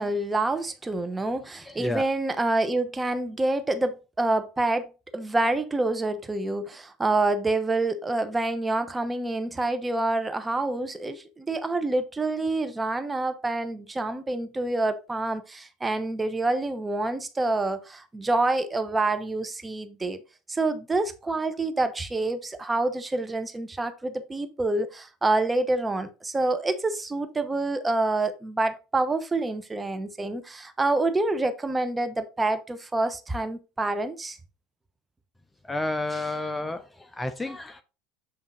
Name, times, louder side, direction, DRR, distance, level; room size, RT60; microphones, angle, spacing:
voice 1, 0.0-20.2 20.5-34.4, right 2 dB, 15° right, 0.9 m, -27 dB
voice 2, 1.6-2.0 35.6-37.8, left 2 dB, 10° left, 0.6 m, -31 dB
7.4 x 3.6 x 3.9 m
hypercardioid pair, 90°, 0 cm